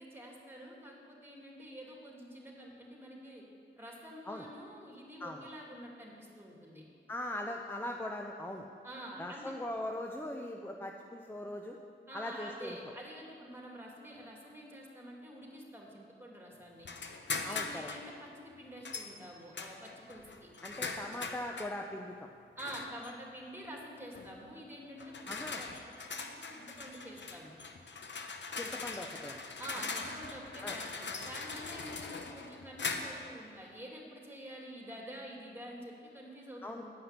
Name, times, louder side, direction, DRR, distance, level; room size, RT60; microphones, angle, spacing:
voice 1, 0.0-3.4 3.8-6.8 8.8-9.5 12.1-16.9 17.4-20.5 22.6-25.3 25.5-25.7 26.2-27.6 29.6-36.9, equal, 10° right, -2 dB, 2.6 m, -48 dB
voice 2, 7.1-8.7 9.2-11.8 12.1-12.9 17.4-17.9 20.6-22.1 25.3-25.6 28.6-29.4 29.8-30.0 30.6-30.8 36.6-36.9, left 1 dB, 10° left, 2 dB, 0.7 m, -40 dB
sound 1, 16.8-18.1 18.8-19.1 19.5-21.8 22.6-23.1 24.1-24.4 25.0-33.3, left 4 dB, 60° left, 0.8 m, -41 dB
9.5 x 5.6 x 8.1 m, 2.3 s
cardioid pair, 50°, 21 cm